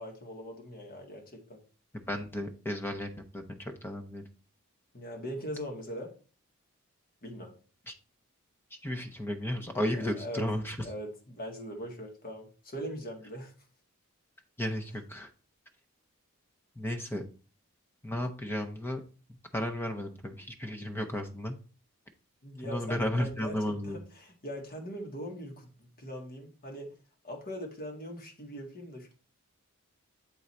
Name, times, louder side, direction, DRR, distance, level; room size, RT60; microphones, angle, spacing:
voice 1, 0.0-1.6 4.9-6.1 7.2-7.5 9.9-10.5 10.8-13.5 22.4-26.9 27.2-29.1, equal, 40° left, 2 dB, 1.8 m, -41 dB
voice 2, 1.9-4.2 7.9-8.0 8.7-10.8 14.6-15.3 16.8-17.2 18.0-19.0 19.5-21.6 22.6-24.0, left 1 dB, 10° left, 5 dB, 0.8 m, -34 dB
8.1 x 3.9 x 4.3 m, 0.36 s
head